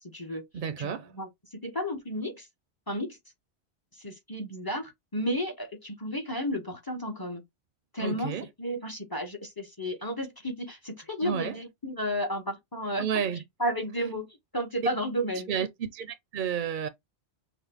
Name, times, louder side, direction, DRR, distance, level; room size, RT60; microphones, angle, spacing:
voice 1, 0.0-0.4 0.8-0.9 1.1-2.5 2.9-3.2 3.9-7.4 7.9-13.1 13.6-15.5, equal, 20° left, 0.7 m, -33 dB
voice 2, 0.5-1.1 8.0-8.5 11.2-11.6 13.0-13.4 15.5-16.9, right 7 dB, 55° right, 0.6 m, -31 dB
5.9 x 2.1 x 3.4 m
omnidirectional pair, 1.2 m